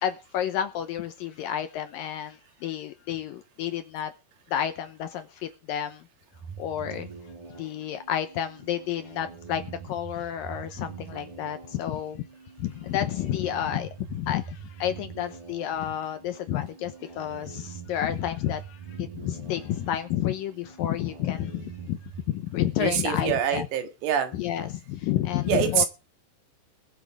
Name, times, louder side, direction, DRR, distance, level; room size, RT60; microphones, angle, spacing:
voice 1, 0.0-4.1 4.5-6.0 6.6-7.1 7.6-12.2 12.6-22.0 22.3-23.7 24.3-25.8, left 11 dB, 75° left, 9 dB, 2.2 m, -30 dB
sound 1, 6.3-22.4, right 6 dB, 45° right, 7.0 m, -44 dB
voice 2, 22.8-24.4 25.5-25.9, right 9 dB, 85° right, 7 dB, 3.9 m, -25 dB
21.0 x 7.5 x 4.7 m, 0.31 s
omnidirectional pair, 4.8 m